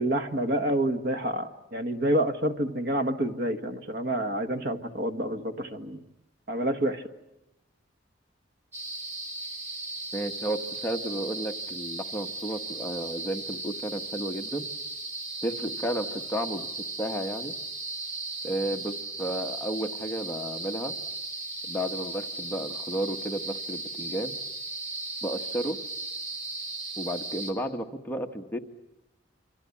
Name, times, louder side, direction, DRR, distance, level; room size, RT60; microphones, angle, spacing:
voice 1, 0.0-6.0 6.5-7.0, right 1 dB, 55° right, 9 dB, 1.5 m, -28 dB
sound 1, 8.7-27.5, right 3 dB, 35° right, 3.3 m, -36 dB
voice 2, 10.1-14.7 15.4-16.7 17.0-17.5 18.4-20.9 21.7-24.4 25.2-25.8 27.0-28.6, right 1 dB, 10° left, 3 dB, 1.3 m, -32 dB
27.5 x 24.5 x 8.5 m, 0.92 s
head